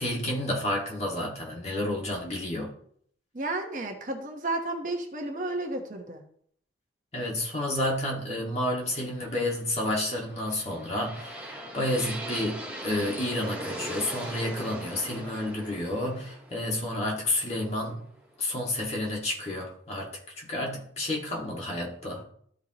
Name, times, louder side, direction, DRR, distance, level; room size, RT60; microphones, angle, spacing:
voice 1, 0.0-2.7 7.1-18.1 18.4-20.1 20.4-22.2, left 1 dB, 35° left, -2 dB, 1.8 m, -30 dB
voice 2, 3.3-6.2, right 2 dB, 45° right, 2 dB, 1.1 m, -32 dB
sound 1, 10.3-18.2, right 1 dB, 10° right, 1.8 m, -39 dB
13.5 x 4.6 x 2.9 m, 0.64 s
head